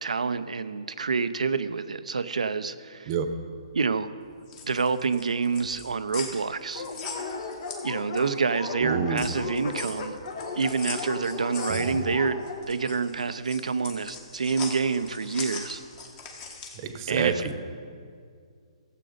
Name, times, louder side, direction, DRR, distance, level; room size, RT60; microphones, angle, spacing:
voice 1, 0.0-3.1 3.7-4.1 4.6-6.8 7.8-10.2 10.6-15.8 17.1-17.5, right 5 dB, 85° right, 12 dB, 0.6 m, -27 dB
sound 1, 4.3-8.4 8.8-16.9, left 5 dB, 25° left, 1.5 m, -40 dB
Dog, 6.7-12.6, left 4 dB, 50° left, 1.4 m, -36 dB
voice 2, 8.8-9.3 11.7-12.0 16.8-17.6, right 6 dB, 35° right, 8 dB, 1.0 m, -28 dB
15.0 x 7.6 x 5.1 m, 2.2 s
hypercardioid pair, 150°, 4 cm